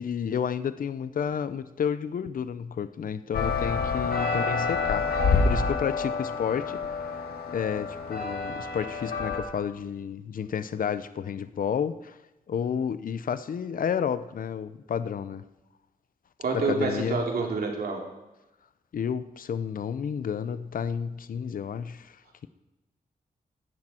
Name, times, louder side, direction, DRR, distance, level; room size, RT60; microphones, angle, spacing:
voice 1, 0.0-6.8 7.5-12.2 12.5-15.4 16.5-17.2 18.9-22.2, left 7 dB, 65° left, 13 dB, 0.6 m, -31 dB
sound 1, 3.3-9.4, left 4 dB, 90° left, 1.9 m, -28 dB
voice 2, 16.4-18.0, right 4 dB, 85° right, 0 dB, 3.0 m, -28 dB
16.5 x 12.5 x 4.4 m, 1.0 s
wide cardioid pair, 130°, 15 cm